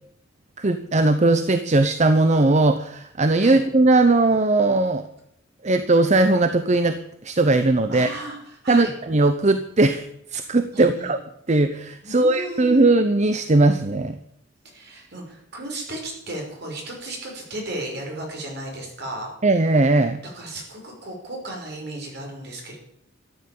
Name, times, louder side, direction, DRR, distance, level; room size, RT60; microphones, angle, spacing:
voice 1, 0.6-5.0 5.6-7.0 7.2-8.1 8.7-10.1 10.3-11.2 11.5-14.2 19.4-20.2, right 2 dB, 35° right, 10 dB, 0.8 m, -19 dB
voice 2, 7.9-8.9 10.7-11.1 12.0-12.9 14.6-19.3 20.2-22.8, right 1 dB, 55° right, 1 dB, 5.5 m, -34 dB
13.5 x 10.0 x 8.5 m, 0.73 s
head